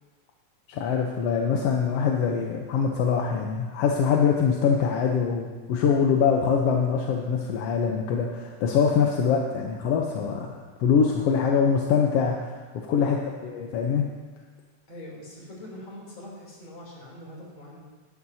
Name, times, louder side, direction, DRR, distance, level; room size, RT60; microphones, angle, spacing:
voice 1, 0.7-10.6 10.8-14.1, left 6 dB, 70° left, 1 dB, 1.7 m, -24 dB
voice 2, 14.9-17.8, left 1 dB, 40° left, -3 dB, 4.0 m, -43 dB
19.0 x 11.5 x 2.8 m, 1.4 s
omnidirectional pair, 3.3 m